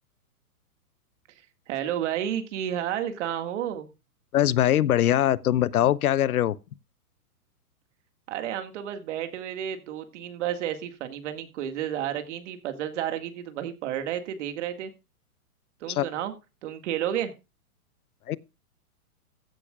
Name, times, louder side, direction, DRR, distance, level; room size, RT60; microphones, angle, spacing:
voice 1, 1.7-3.9 8.3-14.9 15.8-16.3 16.6-17.3, right 10 dB, 50° right, 2.0 m, -31 dB
voice 2, 4.3-6.6 15.9-16.1 18.3-18.4, left 12 dB, 75° left, 0.9 m, -22 dB
15.5 x 10.5 x 2.4 m
hypercardioid pair, 135°, 45 cm